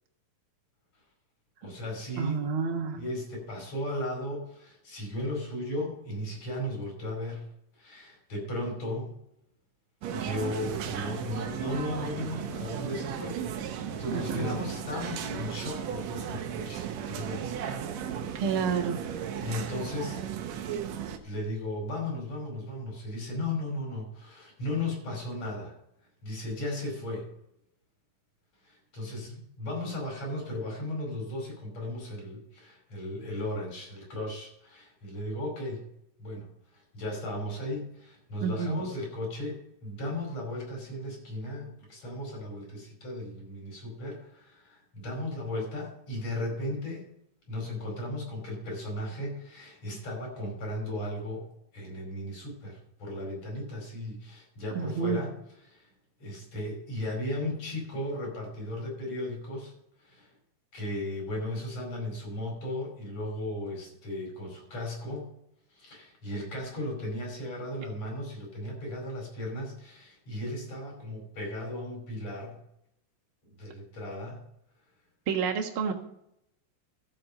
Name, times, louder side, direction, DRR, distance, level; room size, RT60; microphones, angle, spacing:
voice 1, 1.6-2.4 3.0-9.1 10.1-17.8 19.4-20.2 21.2-25.7 26.2-27.3 28.6-35.9 36.2-47.1 47.5-51.5 51.7-55.3 55.7-55.9 56.2-59.7 60.0-60.3 60.7-65.3 65.7-72.6 73.6-74.4, left 1 dB, 60° left, -1 dB, 6.3 m, -36 dB
voice 2, 2.2-3.0 14.1-14.5 18.3-19.0 38.4-38.8 54.7-55.2 75.3-75.9, right 6 dB, 50° right, 2 dB, 2.1 m, -29 dB
sound 1, 10.0-21.2, right 8 dB, 70° right, 2.1 m, -35 dB
14.0 x 7.7 x 5.4 m, 0.76 s
omnidirectional pair, 3.5 m